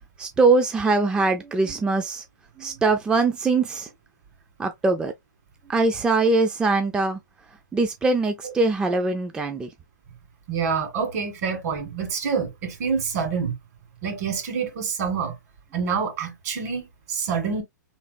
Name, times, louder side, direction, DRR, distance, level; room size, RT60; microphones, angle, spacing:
voice 1, 0.2-2.2 2.6-3.9 4.6-5.1 5.7-7.2 7.5-9.7, right 3 dB, 10° right, 0.4 m, -22 dB
voice 2, 10.5-13.5 14.0-15.4 15.7-17.6, right 6 dB, 55° right, 1.8 m, -27 dB
3.6 x 3.2 x 2.5 m
hypercardioid pair, 125°, 10 cm